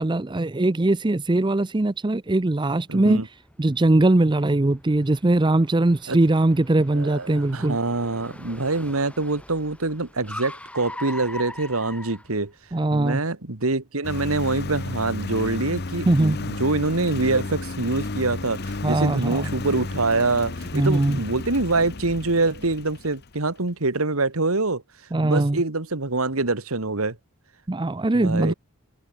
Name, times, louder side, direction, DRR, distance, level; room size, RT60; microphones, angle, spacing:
voice 1, 0.0-3.2 3.6-7.8 12.7-13.2 16.1-16.4 18.8-19.5 20.7-21.2 25.1-25.6 27.7-28.5, right 2 dB, 20° right, 0.6 m, -21 dB
voice 2, 2.9-3.3 6.1-6.2 6.9-12.5 12.9-24.8 25.2-27.2 28.1-28.5, right 3 dB, 80° right, 2.0 m, -25 dB
Car, 3.1-12.9, left 1 dB, 5° left, 7.9 m, -42 dB
Engine, 14.0-23.5, left 2 dB, 50° left, 1.0 m, -33 dB
head